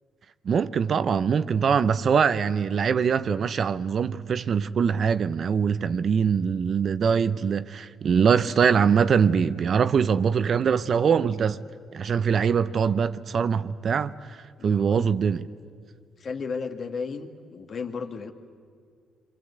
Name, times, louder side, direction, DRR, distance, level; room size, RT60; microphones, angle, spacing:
voice 1, 0.4-11.6 11.9-15.5, right 6 dB, 50° right, 0.7 m, -23 dB
voice 2, 14.6-15.1 16.2-18.3, left 5 dB, 50° left, 1.9 m, -34 dB
26.5 x 25.0 x 8.2 m
cardioid pair, 90°, 0 cm